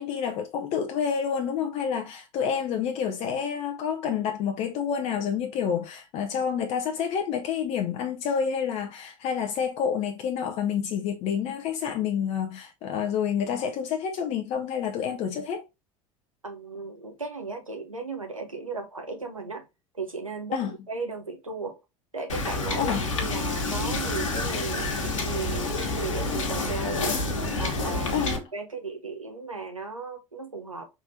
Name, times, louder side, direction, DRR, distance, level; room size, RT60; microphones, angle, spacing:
voice 1, 0.0-15.6 20.5-20.7 22.8-23.0 28.1-28.5, left 7 dB, 40° left, 0.6 m, -28 dB
voice 2, 16.4-19.6 19.9-21.8 22.1-22.9 23.2-27.2 27.6-30.9, right 4 dB, 85° right, 1.0 m, -36 dB
Wind / Boat Water vehicle, 22.3-28.4, left 2 dB, 70° left, 1.3 m, -28 dB
5.3 x 3.7 x 2.7 m
figure-of-eight pair, 75°, 17 cm